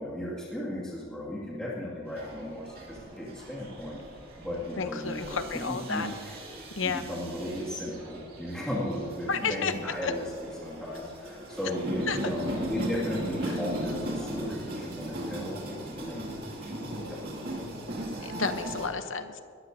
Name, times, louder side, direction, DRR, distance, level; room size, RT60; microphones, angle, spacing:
voice 1, 0.0-6.3 6.8-10.3 10.6-17.5, equal, 5° left, -8 dB, 2.2 m, -36 dB
sound 1, 2.1-18.9, right 1 dB, 45° right, 2.5 m, -38 dB
voice 2, 4.8-6.1 6.8-7.0 9.3-9.7 10.0-10.1 12.1-12.2 13.5-13.6 18.2-19.4, left 5 dB, 70° left, 9 dB, 0.9 m, -31 dB
21.5 x 14.0 x 2.8 m, 2.2 s
head